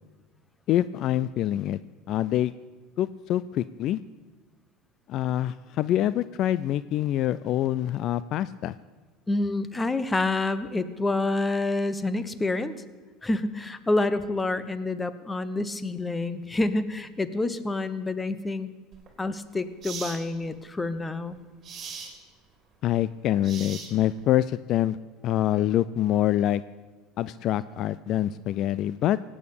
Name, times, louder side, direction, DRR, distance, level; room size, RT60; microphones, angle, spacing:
voice 1, 0.7-1.8 2.1-2.5 3.0-4.0 5.1-8.7 22.8-25.0 25.2-26.6 27.2-29.2, left 12 dB, 50° left, 17 dB, 0.4 m, -25 dB
voice 2, 9.3-12.8 13.2-18.7 19.2-21.4, left 2 dB, 15° left, 14 dB, 0.9 m, -28 dB
sound 1, 18.9-19.1 19.8-20.2 21.6-22.1 23.4-24.2, right 6 dB, 35° right, 3.2 m, -39 dB
17.5 x 8.7 x 8.5 m, 1.3 s
supercardioid pair, 120°, 0 cm